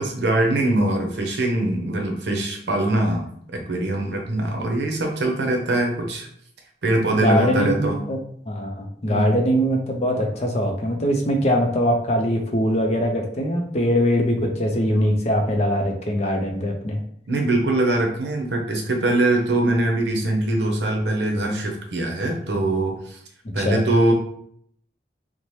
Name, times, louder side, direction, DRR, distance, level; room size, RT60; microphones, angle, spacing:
voice 1, 0.0-3.2 3.5-6.3 6.8-8.0 9.1-9.4 17.3-23.2 23.5-24.1, right 1 dB, 70° right, 2 dB, 0.6 m, -22 dB
voice 2, 7.2-8.2 8.5-17.0 23.6-23.8, equal, 40° left, 2 dB, 0.5 m, -22 dB
2.7 x 2.1 x 3.1 m, 0.65 s
head